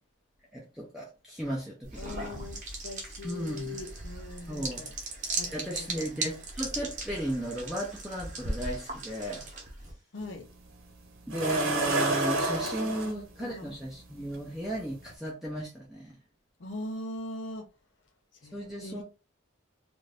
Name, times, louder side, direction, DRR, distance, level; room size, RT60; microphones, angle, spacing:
voice 1, 0.5-2.4 3.2-3.8 4.5-4.9 5.5-9.4 11.3-16.2 18.5-19.0, right 1 dB, ahead, 0.5 m, -35 dB
sound 1, 1.8-9.9, right 2 dB, 35° right, 0.8 m, -38 dB
voice 2, 2.0-4.9 5.4-6.4 10.1-10.5 12.5-13.8 16.6-17.7 18.4-19.0, left 1 dB, 60° left, 0.6 m, -41 dB
sound 2, 10.2-10.3 11.3-13.1 14.3-14.4 15.0-15.1, right 2 dB, 80° right, 0.9 m, -29 dB
2.6 x 2.5 x 3.3 m
head